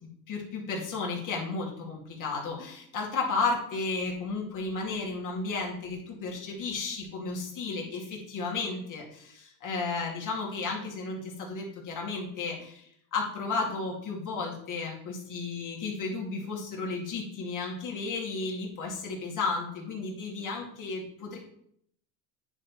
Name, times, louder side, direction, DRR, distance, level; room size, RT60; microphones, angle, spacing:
voice 1, 0.0-12.9 13.1-21.4, left 4 dB, 40° left, -2 dB, 2.4 m, -33 dB
9.7 x 3.4 x 4.3 m, 0.71 s
supercardioid pair, 90°, 48 cm